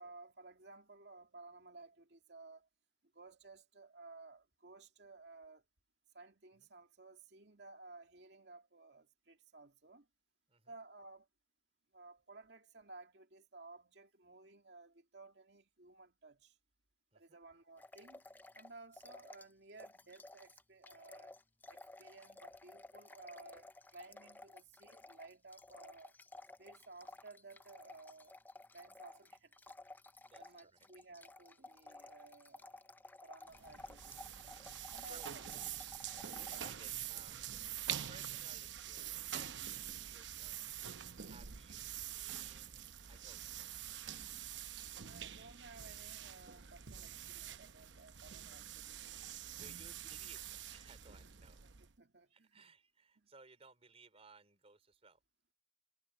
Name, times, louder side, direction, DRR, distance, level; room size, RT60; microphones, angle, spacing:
voice 1, 0.0-2.7 3.1-5.6 6.1-10.1 10.7-11.3 11.9-16.6 17.1-18.2 18.5-21.3 21.7-26.1 26.6-28.3 28.7-29.5 30.4-32.9 33.2-34.3 34.9-35.5 36.5-36.6 45.0-49.0 51.6-52.6 53.2-53.3, right 3 dB, 65° right, 2.4 m, -57 dB
sound 1, 17.8-19.5 19.8-36.8, left 2 dB, 10° left, 0.4 m, -55 dB
voice 2, 30.2-30.9 34.5-35.3 36.4-37.4 38.1-39.5 39.8-40.6 41.2-43.6 49.5-51.6 52.3-55.2, right 4 dB, 35° right, 3.8 m, -62 dB
sound 2, 33.5-52.0, right 10 dB, 85° right, 0.9 m, -46 dB
head